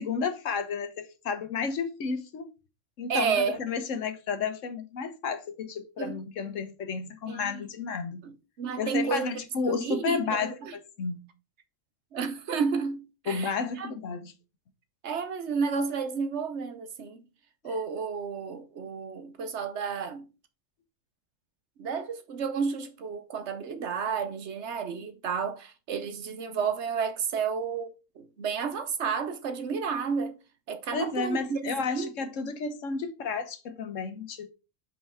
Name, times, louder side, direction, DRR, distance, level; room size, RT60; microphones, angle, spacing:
voice 1, 0.0-2.5 3.0-3.3 3.6-8.2 8.8-10.5 11.0-11.2 13.3-14.3 30.9-34.5, left 5 dB, 80° left, 1.3 m, -32 dB
voice 2, 3.1-3.6 6.0-6.2 7.3-7.7 8.2-9.4 9.6-10.7 12.1-13.9 15.0-17.2 17.6-20.3 21.8-27.9 28.2-30.4 30.7-32.1, right 6 dB, 70° right, 1.1 m, -31 dB
5.6 x 4.5 x 4.4 m
omnidirectional pair, 1.3 m